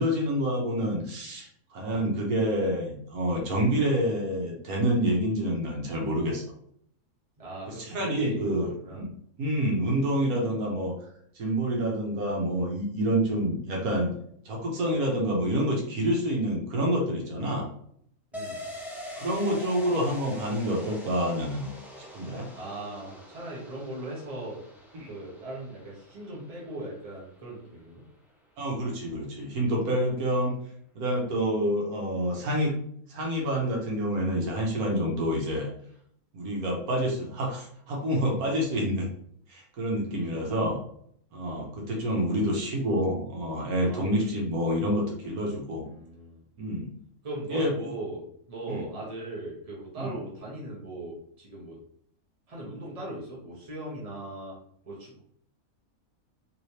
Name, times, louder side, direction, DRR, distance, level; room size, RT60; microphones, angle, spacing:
voice 1, 0.0-6.4 7.7-9.1 9.4-10.9 11.3-14.1 14.4-17.7 19.2-21.7 22.1-22.5 24.9-25.1 28.6-30.5 30.9-32.7 33.1-35.7 36.3-39.1 39.5-40.8 41.3-45.8 46.6-46.9 47.5-47.7 48.7-48.8 50.0-50.1, equal, 80° right, -1 dB, 1.4 m, -27 dB
voice 2, 7.4-9.1 18.3-18.6 22.5-24.6 25.0-28.0 31.3-31.4 40.1-40.6 41.4-41.7 43.9-44.1 45.8-46.4 47.2-48.2 48.5-51.8 52.5-54.6 54.8-55.2, right 1 dB, 25° right, -4 dB, 1.1 m, -39 dB
sound 1, 18.3-27.7 28.0-28.1, left 1 dB, ahead, 0.7 m, -44 dB
3.2 x 3.2 x 2.8 m, 0.65 s
omnidirectional pair, 1.5 m